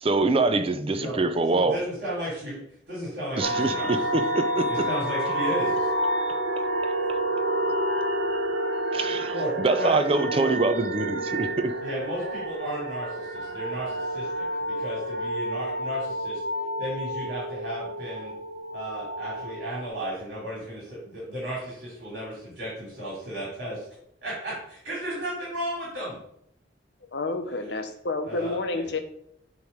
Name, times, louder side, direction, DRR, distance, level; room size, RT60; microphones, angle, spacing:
voice 1, 0.0-1.8 3.4-4.9 8.9-11.7, right 3 dB, 30° right, 10 dB, 0.5 m, -25 dB
voice 2, 0.9-2.6 2.9-3.9 4.7-5.9 9.3-10.5 11.8-16.4 16.8-18.3 18.7-23.9 24.2-26.2 28.2-29.0, right 1 dB, 55° right, -6 dB, 3.0 m, -34 dB
sound 1, 3.4-19.9, right 1 dB, 75° right, 0.9 m, -29 dB
voice 3, 27.1-29.0, left 2 dB, 65° left, 7 dB, 0.8 m, -29 dB
8.3 x 3.2 x 5.0 m, 0.71 s
head